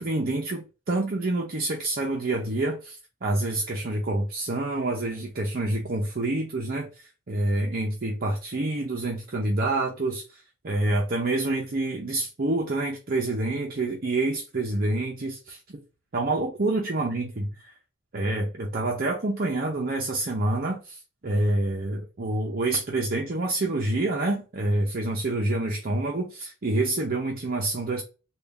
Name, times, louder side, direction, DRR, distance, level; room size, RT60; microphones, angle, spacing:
voice 1, 0.0-15.8 16.1-17.5 18.1-28.0, right 2 dB, 45° right, 0.6 m, -27 dB
3.7 x 2.3 x 3.2 m
head